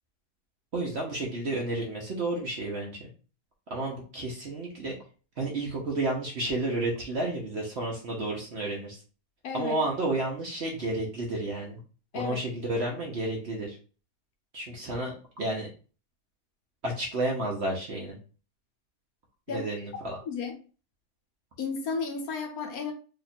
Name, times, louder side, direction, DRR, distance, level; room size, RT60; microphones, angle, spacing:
voice 1, 0.7-3.1 3.7-4.9 5.4-9.0 9.5-11.8 12.1-13.8 14.5-15.7 16.8-18.2 19.5-20.2, right 2 dB, 55° right, 0.8 m, -31 dB
voice 2, 9.4-9.8 12.1-12.4 19.5-19.7 20.3-20.6 21.6-22.9, left 5 dB, 70° left, 1.0 m, -33 dB
2.9 x 2.4 x 4.1 m
omnidirectional pair, 1.8 m